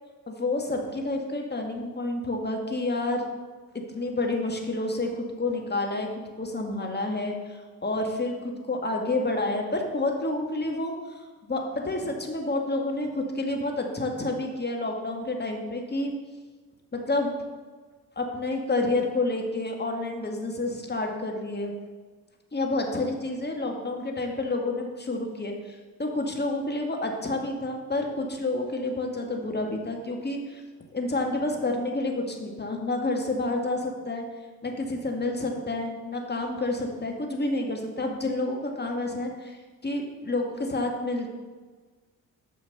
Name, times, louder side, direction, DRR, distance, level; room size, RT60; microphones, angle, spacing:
voice 1, 0.3-3.2 3.9-6.1 6.4-16.1 16.9-17.3 18.2-21.7 22.5-30.6 30.9-34.2 34.6-41.3, left 2 dB, 25° left, 2 dB, 1.9 m, -29 dB
8.6 x 5.7 x 5.4 m, 1.4 s
hypercardioid pair, 45°, 42 cm